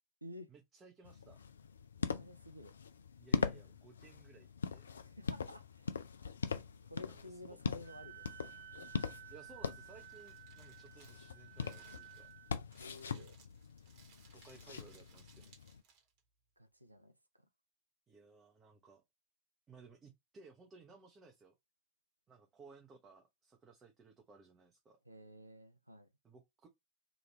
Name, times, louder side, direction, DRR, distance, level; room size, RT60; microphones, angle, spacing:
voice 1, 0.5-1.4 3.2-4.9 7.0-7.6 9.3-12.3 14.3-15.5 18.1-19.0 19.7-21.6 22.3-25.0 26.2-26.7, right 4 dB, 20° right, 0.6 m, -60 dB
sound 1, 1.0-15.8, left 6 dB, 70° left, 0.3 m, -42 dB
voice 2, 2.0-2.7 5.0-6.0 6.8-8.4 12.8-13.4 16.6-17.1 25.1-26.1, left 1 dB, 85° right, 0.5 m, -52 dB
Wind instrument woodwind instrument, 7.8-12.5, right 16 dB, 70° right, 0.9 m, -55 dB
Crumpling crinkling, 9.5-16.2, right 6 dB, 45° right, 1.1 m, -65 dB
3.0 x 2.4 x 3.1 m
figure-of-eight pair, 90°, 0 cm